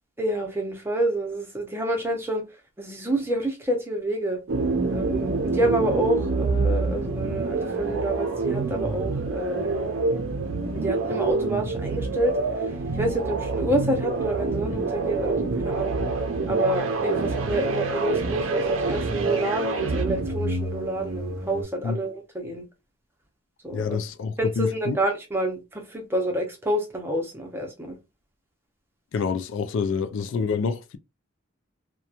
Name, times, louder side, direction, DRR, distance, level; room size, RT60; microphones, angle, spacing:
voice 1, 0.2-2.4 2.8-4.4 4.9-9.9 10.7-12.4 12.6-16.0 16.5-22.6 23.6-24.0 24.4-28.0 29.3-29.4, right 1 dB, 10° right, 0.6 m, -28 dB
sound 1, 4.5-21.6, right 3 dB, 85° right, 0.5 m, -27 dB
voice 2, 23.7-25.0 29.1-31.0, left 5 dB, 70° left, 0.3 m, -27 dB
2.9 x 2.2 x 2.3 m
head